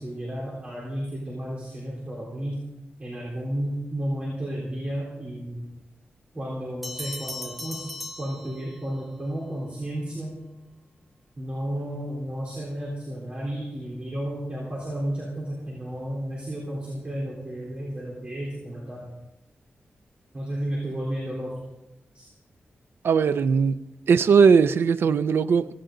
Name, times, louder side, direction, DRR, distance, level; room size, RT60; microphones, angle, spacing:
voice 1, 0.0-2.6 3.0-5.6 6.3-7.9 8.2-10.4 11.4-19.1 20.3-21.5 22.1-22.3, right 1 dB, 30° right, 3.7 m, -32 dB
sound 1, 6.8-9.1, left 1 dB, ahead, 1.2 m, -38 dB
voice 2, 23.0-23.8 24.1-25.7, right 6 dB, 75° right, 0.6 m, -19 dB
16.5 x 16.0 x 3.8 m
wide cardioid pair, 160°, 4 cm